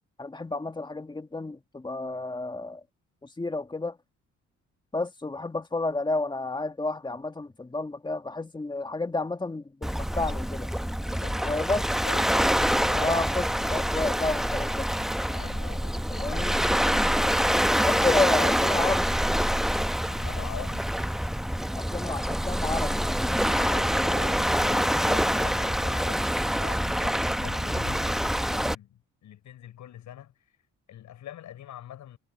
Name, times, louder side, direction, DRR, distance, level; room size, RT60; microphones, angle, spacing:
voice 1, 0.2-2.8 3.2-4.0 4.9-10.7 11.4-11.8 12.9-14.9 16.2-16.6 17.7-19.1 21.7-23.1, left 2 dB, 15° left, 1.7 m, -30 dB
Waves surf, 9.8-28.7, equal, ahead, 0.8 m, -26 dB
voice 2, 11.1-13.7 15.3-17.1 20.1-20.9 23.4-30.3 30.9-32.2, left 11 dB, 75° left, 6.0 m, -43 dB
cardioid pair, 90°, 30 cm